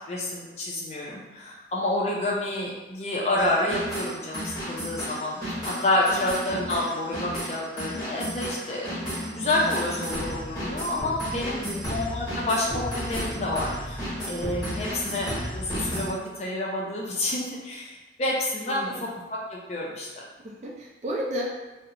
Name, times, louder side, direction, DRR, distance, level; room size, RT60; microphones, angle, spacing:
voice 1, 0.1-8.9 9.3-11.6 11.9-20.1, left 1 dB, 35° left, -3 dB, 0.4 m, -29 dB
sound 1, 3.4-16.1, equal, 20° left, 0.9 m, -33 dB
voice 2, 11.5-11.9 18.7-19.0 20.4-21.6, equal, 40° right, -2 dB, 0.4 m, -33 dB
2.8 x 2.0 x 2.5 m, 1.2 s
head